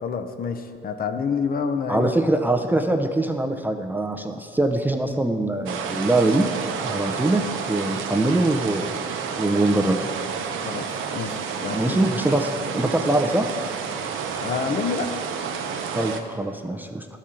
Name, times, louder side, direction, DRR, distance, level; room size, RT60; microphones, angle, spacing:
voice 1, 0.0-2.1 10.6-12.0 14.4-15.1, left 5 dB, 45° left, 7 dB, 0.6 m, -28 dB
voice 2, 1.9-6.5 6.8-7.4 7.7-8.9 9.4-10.1 11.7-13.5 15.9-17.1, right 2 dB, 10° right, 4 dB, 0.4 m, -23 dB
sound 1, 5.7-16.2, right 6 dB, 85° right, 0.6 m, -30 dB
11.5 x 4.3 x 3.7 m, 2.3 s
cardioid pair, 90°, 20 cm